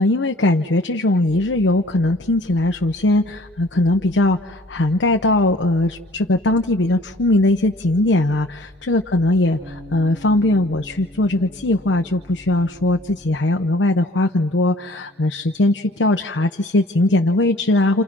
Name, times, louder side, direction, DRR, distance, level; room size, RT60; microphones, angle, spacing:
voice 1, 0.0-8.6 8.9-18.0, left 2 dB, 90° left, 4 dB, 0.9 m, -19 dB
sound 1, 1.3-13.4, left 1 dB, 30° left, 1.9 m, -46 dB
sound 2, 9.6-15.8, equal, 40° right, 7.9 m, -44 dB
30.0 x 28.5 x 6.1 m, 1.3 s
head